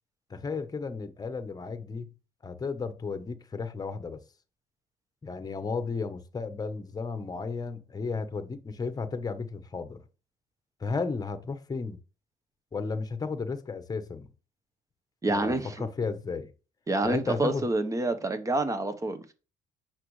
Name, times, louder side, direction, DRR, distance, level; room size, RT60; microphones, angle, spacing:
voice 1, 0.3-2.1 2.4-4.2 5.2-10.0 10.8-12.0 12.7-14.3 15.3-16.5 17.0-17.7, left 4 dB, 20° left, 1.0 m, -34 dB
voice 2, 15.2-15.9 16.9-19.2, right 2 dB, 20° right, 1.1 m, -28 dB
8.5 x 6.1 x 3.2 m
cardioid pair, 110°, 17 cm